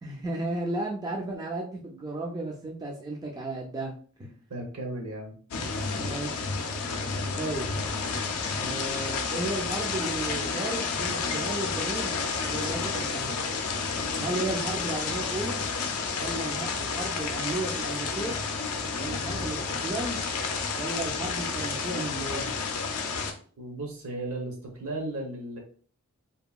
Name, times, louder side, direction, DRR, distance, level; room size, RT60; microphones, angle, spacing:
voice 1, 0.0-3.9 4.2-4.3 6.0-6.5 7.4-7.7 8.5-12.1 12.4-13.5 14.2-15.6 16.1-18.4 18.9-20.2 20.7-22.5, right 2 dB, 15° right, -2 dB, 0.3 m, -34 dB
voice 2, 4.5-5.3 6.8-7.1 23.6-25.6, right 2 dB, 70° right, 1 dB, 0.8 m, -35 dB
sound 1, 5.5-23.3, left 4 dB, 75° left, 0.4 m, -31 dB
2.8 x 2.5 x 2.2 m, 0.44 s
head